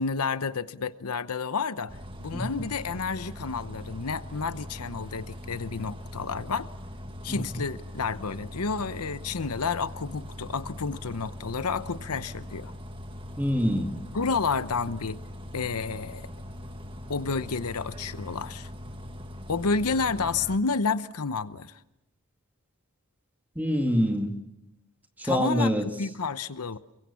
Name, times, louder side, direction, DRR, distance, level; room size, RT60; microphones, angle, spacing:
voice 1, 0.0-6.7 7.2-12.7 14.1-15.2 15.5-16.3 17.1-18.7 19.5-21.7 25.2-26.8, left 4 dB, 85° left, 14 dB, 0.9 m, -30 dB
Bus, 1.9-20.6, left 1 dB, 25° right, 1.7 m, -41 dB
voice 2, 7.3-7.6 13.4-13.9 23.6-24.4 25.2-25.9, equal, 10° right, 4 dB, 2.3 m, -25 dB
28.0 x 22.5 x 7.1 m, 0.87 s
head